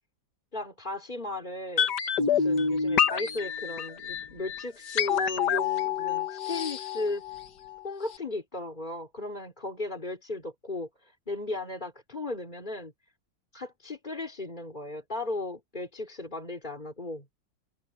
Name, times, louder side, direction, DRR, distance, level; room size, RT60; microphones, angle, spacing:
voice 1, 0.5-7.2 7.8-12.9 13.5-17.2, left 2 dB, 25° left, 3.4 m, -36 dB
sound 1, 1.8-7.8 8.1-8.2, left 7 dB, 65° left, 1.8 m, -28 dB
omnidirectional pair, 2.1 m